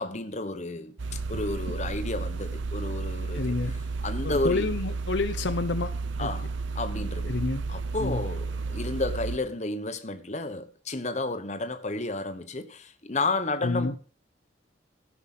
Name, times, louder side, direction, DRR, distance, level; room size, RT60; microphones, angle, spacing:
voice 1, 0.0-4.7 6.2-7.4 7.7-14.0, left 2 dB, 40° left, 1.1 m, -32 dB
sound 1, 1.0-9.4, right 4 dB, 85° right, 0.7 m, -32 dB
voice 2, 3.3-3.7 4.2-5.9 6.2-6.3 7.3-7.6 8.0-8.2 13.6-13.9, left 3 dB, 70° left, 0.7 m, -28 dB
15.5 x 6.0 x 5.8 m
head